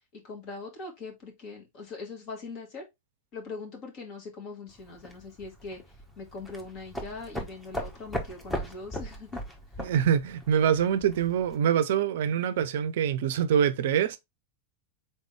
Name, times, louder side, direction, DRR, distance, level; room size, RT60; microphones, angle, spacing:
voice 1, 0.1-2.8 3.3-5.8 6.2-9.4, left 3 dB, 40° left, 2.0 m, -41 dB
sound 1, 4.7-11.5, equal, 5° left, 1.2 m, -39 dB
voice 2, 9.8-14.2, right 8 dB, 55° right, 0.5 m, -25 dB
4.1 x 3.6 x 3.5 m
figure-of-eight pair, 90°, 0 cm